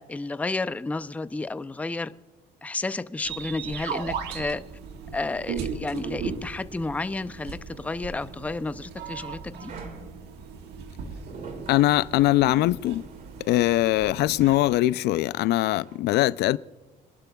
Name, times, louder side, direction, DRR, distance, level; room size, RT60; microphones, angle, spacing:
voice 1, 0.0-2.1 2.6-4.6 5.1-9.7, left 3 dB, 10° left, 0.4 m, -31 dB
sound 1, 3.2-14.6, right 6 dB, 80° right, 1.5 m, -37 dB
sound 2, 8.2-16.0, right 3 dB, 50° right, 2.3 m, -47 dB
voice 2, 11.7-13.0 13.5-16.6, left 16 dB, 75° left, 0.4 m, -22 dB
26.0 x 12.0 x 2.3 m
cardioid pair, 110°, 17 cm